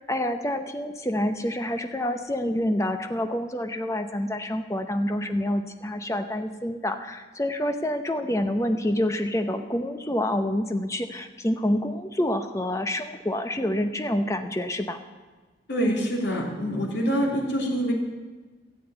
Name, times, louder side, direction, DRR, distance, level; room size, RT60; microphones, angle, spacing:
voice 1, 0.0-15.0, left 1 dB, 15° left, 7 dB, 0.8 m, -27 dB
voice 2, 15.7-17.9, equal, 75° left, -1 dB, 3.1 m, -25 dB
14.0 x 7.6 x 8.9 m, 1.3 s
head